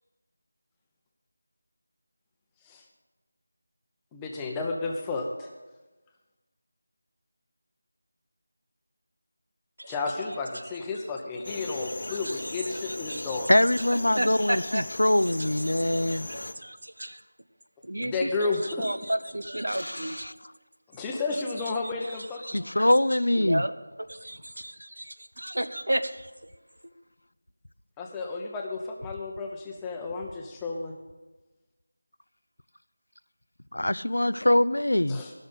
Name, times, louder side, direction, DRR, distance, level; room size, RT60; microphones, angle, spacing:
voice 1, 4.1-5.5 9.9-13.5 18.0-18.8 20.9-22.6 28.0-30.9 35.1-35.3, left 3 dB, 10° left, 0 dB, 1.0 m, -32 dB
sound 1, 11.4-16.5, left 2 dB, 55° left, 1.0 m, -38 dB
voice 2, 11.8-14.8 15.2-17.2 17.8-20.3 21.3-26.5, right 1 dB, 85° right, 10 dB, 1.0 m, -34 dB
voice 3, 13.5-16.3 22.5-23.6 33.7-35.2, left 1 dB, 85° left, 17 dB, 0.4 m, -23 dB
14.5 x 6.5 x 8.2 m, 1.2 s
figure-of-eight pair, 170°, 0 cm